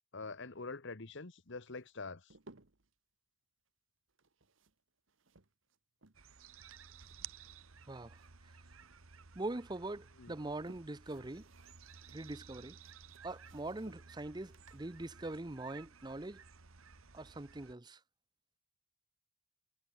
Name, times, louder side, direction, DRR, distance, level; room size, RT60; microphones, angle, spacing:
voice 1, 0.1-2.3 10.2-10.3, left 3 dB, 60° left, 1.3 m, -45 dB
sound 1, 1.7-3.0 4.1-6.4 6.7-8.5 8.8-9.7 10.2-16.3, right 2 dB, 65° right, 1.8 m, -64 dB
sound 2, 6.1-17.7, right 6 dB, 85° right, 1.5 m, -55 dB
voice 2, 7.9-8.2 9.4-11.4 12.1-12.8 13.2-16.4 17.1-18.0, right 2 dB, 20° right, 0.7 m, -42 dB
head